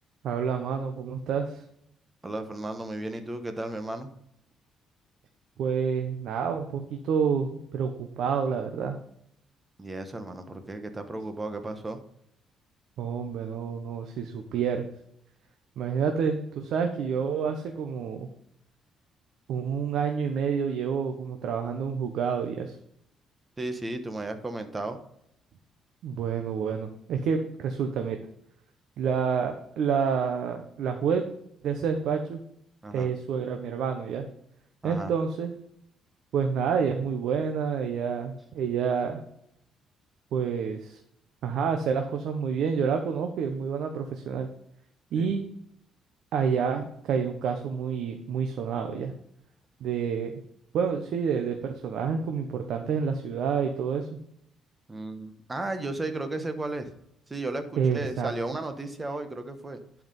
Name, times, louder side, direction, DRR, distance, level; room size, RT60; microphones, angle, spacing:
voice 1, 0.2-1.6 5.6-9.0 13.0-14.8 15.8-18.3 19.5-22.7 26.0-28.2 29.0-31.2 31.6-32.4 32.9-34.3 34.8-35.5 36.3-39.2 40.3-41.0 41.4-44.5 45.1-45.4 46.3-49.1 49.8-50.3 50.7-54.1 57.8-58.3, right 6 dB, 70° right, 5 dB, 1.0 m, -28 dB
voice 2, 2.2-4.1 9.8-12.0 23.6-25.0 32.8-33.1 34.8-35.1 45.1-45.3 54.9-56.9 57.3-57.6 57.9-59.8, right 2 dB, 20° right, 8 dB, 1.2 m, -34 dB
11.0 x 5.0 x 5.4 m, 0.74 s
cardioid pair, 120°, 0 cm